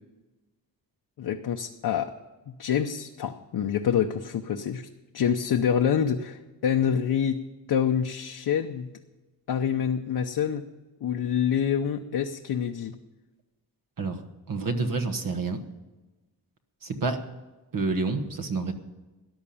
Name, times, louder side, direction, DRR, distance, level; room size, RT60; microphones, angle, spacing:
voice 1, 1.2-2.1 2.5-4.9 5.1-7.4 7.7-8.9 9.5-10.6 11.0-13.0, left 8 dB, 65° left, 3 dB, 0.9 m, -26 dB
voice 2, 14.5-15.6 16.8-17.2 17.7-18.7, right 3 dB, 55° right, 6 dB, 1.4 m, -28 dB
14.0 x 10.5 x 7.0 m, 1.1 s
wide cardioid pair, 130°, 40 cm